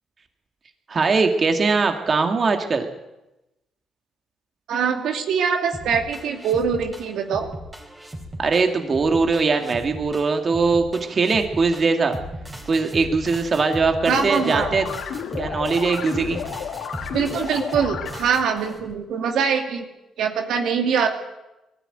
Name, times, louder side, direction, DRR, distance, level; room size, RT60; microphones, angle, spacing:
voice 1, 0.9-2.9 8.4-12.2 12.7-14.9 15.4-16.4, right 4 dB, 40° right, 5 dB, 2.2 m, -21 dB
voice 2, 4.7-7.5 14.1-14.7 17.1-19.9 20.2-21.1, right 6 dB, 75° right, 4 dB, 2.4 m, -23 dB
sound 1, 5.7-18.9, equal, 15° right, 4.3 m, -37 dB
sound 2, 14.1-18.5, left 7 dB, 75° left, 2.1 m, -32 dB
20.5 x 14.0 x 9.2 m, 0.97 s
cardioid pair, 90°, 0 cm